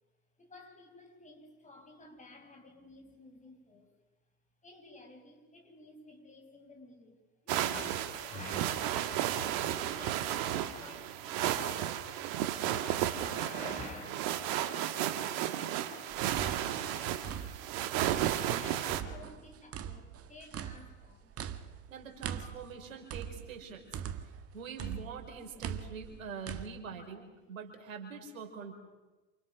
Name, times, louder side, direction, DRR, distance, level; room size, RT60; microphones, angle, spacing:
voice 1, 0.4-3.9 4.6-9.1 9.5-11.8 12.4-14.7 15.2-18.0 18.6-21.3, left 2 dB, 20° left, 2 dB, 7.0 m, -52 dB
sound 1, 7.5-19.0, right 11 dB, 55° right, 2.0 m, -33 dB
sound 2, 16.1-18.6 18.9-24.5 24.8-26.7, right 8 dB, 35° right, 1.7 m, -41 dB
voice 2, 21.9-23.8 24.2-28.7, right 5 dB, 75° right, 3 dB, 5.3 m, -44 dB
28.0 x 27.0 x 6.3 m, 1.2 s
hypercardioid pair, 85°, 41 cm